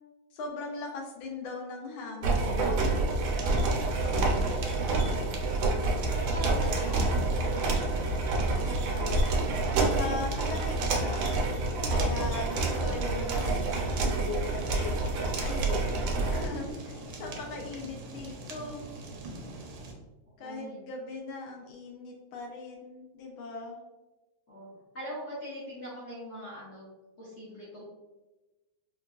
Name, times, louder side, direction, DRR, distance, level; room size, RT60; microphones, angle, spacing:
voice 1, 0.3-3.1 6.5-7.1 8.6-9.2 9.8-11.3 11.8-16.0 16.3-18.9 20.4-23.8, left 3 dB, 80° left, 1 dB, 1.4 m, -39 dB
sound 1, 2.2-16.5, right 2 dB, 90° right, 1.5 m, -28 dB
Fire, 3.1-19.9, right 2 dB, 75° right, 1.2 m, -43 dB
voice 2, 6.2-7.6 20.4-20.8 24.5-26.9 27.2-27.8, equal, 55° left, -8 dB, 0.7 m, -43 dB
3.8 x 2.3 x 2.3 m, 1.1 s
omnidirectional pair, 2.2 m